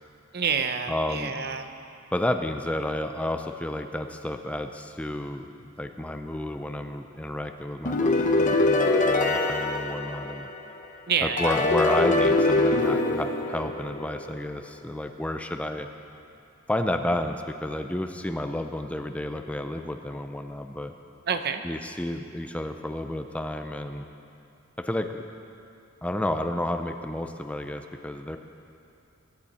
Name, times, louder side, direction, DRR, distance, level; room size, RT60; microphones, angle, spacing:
voice 1, 0.3-1.7 11.1-11.6 21.3-21.6, right 6 dB, 55° right, 8 dB, 0.8 m, -28 dB
voice 2, 0.9-1.3 2.1-10.5 11.2-15.9 16.7-20.9 21.6-24.0 24.8-25.2 26.0-28.4, left 1 dB, 5° left, 6 dB, 0.5 m, -31 dB
sound 1, 7.9-10.7 11.4-14.2, left 2 dB, 40° left, 0.9 m, -23 dB
23.0 x 10.5 x 4.3 m, 2.7 s
head